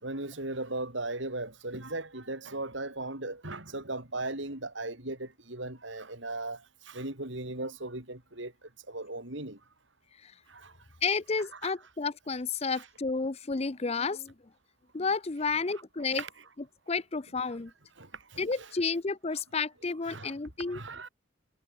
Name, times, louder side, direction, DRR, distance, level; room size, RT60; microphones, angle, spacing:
voice 1, 0.0-9.6 10.5-10.8 11.5-11.7 12.7-12.9 16.1-16.3 18.0-18.7 20.1-20.4 20.7-21.1, right 2 dB, 65° right, 4.3 m, -38 dB
voice 2, 11.0-14.3 14.9-16.2 16.9-17.7 18.4-20.8, left 4 dB, 30° left, 0.6 m, -31 dB
head